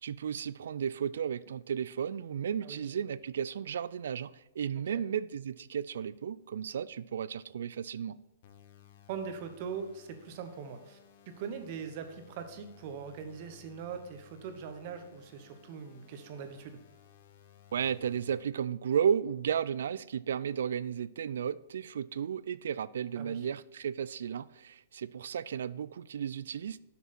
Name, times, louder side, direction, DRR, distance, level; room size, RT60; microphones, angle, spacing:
voice 1, 0.0-8.2 17.7-26.8, right 8 dB, 80° right, 19 dB, 0.3 m, -34 dB
sound 1, 8.4-18.4, left 10 dB, 50° left, 0.8 m, -59 dB
voice 2, 9.1-11.0 11.3-16.8 23.2-23.4, right 6 dB, 45° right, 7 dB, 1.0 m, -41 dB
7.3 x 5.9 x 4.3 m, 0.98 s
hypercardioid pair, 150°, 0 cm